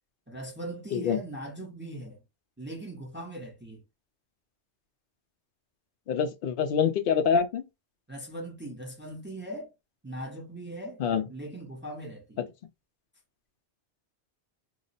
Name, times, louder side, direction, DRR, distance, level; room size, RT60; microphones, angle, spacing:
voice 1, 0.3-2.2 2.6-3.8 8.1-9.7 10.0-11.0 11.3-12.4, right 1 dB, 10° right, 0.7 m, -40 dB
voice 2, 6.1-7.6 11.0-11.2, left 7 dB, 60° left, 0.7 m, -25 dB
2.9 x 2.0 x 3.9 m
omnidirectional pair, 1.2 m